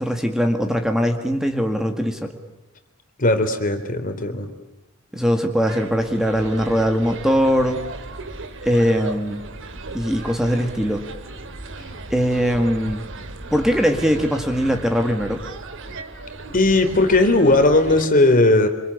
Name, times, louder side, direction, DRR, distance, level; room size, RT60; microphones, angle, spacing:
voice 1, 0.0-2.3 5.1-7.8 8.6-9.5 9.9-11.1 12.1-13.0 13.5-15.4, equal, ahead, 5 dB, 2.0 m, -21 dB
voice 2, 3.2-4.5 16.5-18.7, left 2 dB, 40° left, 7 dB, 3.5 m, -17 dB
sound 1, 5.7-18.1, right 2 dB, 60° right, 2.4 m, -36 dB
26.5 x 26.5 x 8.5 m, 0.98 s
head